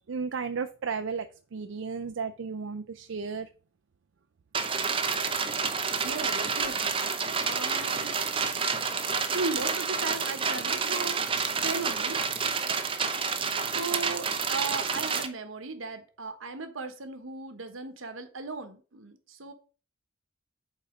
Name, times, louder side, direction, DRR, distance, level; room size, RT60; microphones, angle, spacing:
voice 1, 0.1-1.3 1.5-3.5, right 5 dB, 70° right, 0.5 m, -33 dB
sound 1, 4.5-15.3, right 5 dB, 25° right, 0.7 m, -29 dB
voice 2, 6.0-7.0 7.4-8.2 9.3-11.2 11.6-12.2 13.7-19.5, right 3 dB, 85° right, 1.1 m, -36 dB
8.3 x 4.2 x 5.0 m
head